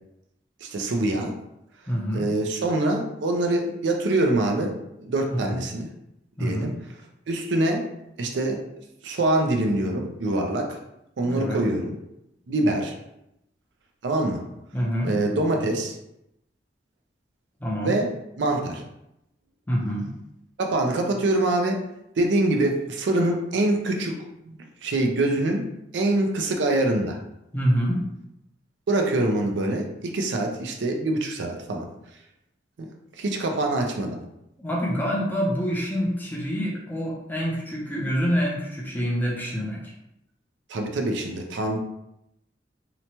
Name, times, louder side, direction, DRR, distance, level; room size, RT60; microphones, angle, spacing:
voice 1, 0.6-1.3 2.1-4.7 5.0-5.9 6.4-6.7 7.3-7.8 8.2-8.6 9.0-10.8 11.2-11.9 12.5-12.9 14.0-14.4 15.0-15.9 17.8-18.1 18.4-18.8 20.6-21.8 22.2-24.1 24.5-25.6 25.9-27.2 28.9-31.9 32.8-32.9 33.2-34.2 40.7-41.8, right 2 dB, 80° right, 3 dB, 0.4 m, -24 dB
voice 2, 1.9-2.2 5.3-5.6 6.4-6.7 11.2-11.6 14.7-15.1 17.6-17.9 19.7-20.1 27.5-28.0 34.6-39.9, equal, 10° left, -4 dB, 0.5 m, -26 dB
2.8 x 2.1 x 2.8 m, 0.84 s
head